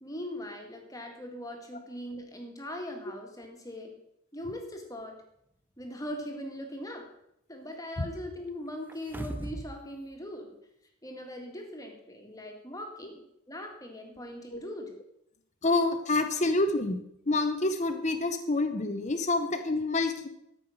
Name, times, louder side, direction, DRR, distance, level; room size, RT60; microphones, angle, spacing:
voice 1, 0.0-4.0 4.3-5.2 5.8-7.1 7.5-10.6 11.0-15.0, left 1 dB, 15° left, 3 dB, 1.7 m, -40 dB
sound 1, 8.9-9.8 10.1-10.2, right 1 dB, 10° right, 0.5 m, -37 dB
voice 2, 15.6-17.0 17.3-20.3, left 2 dB, 35° left, 7 dB, 0.8 m, -27 dB
12.5 x 5.6 x 6.3 m, 0.78 s
head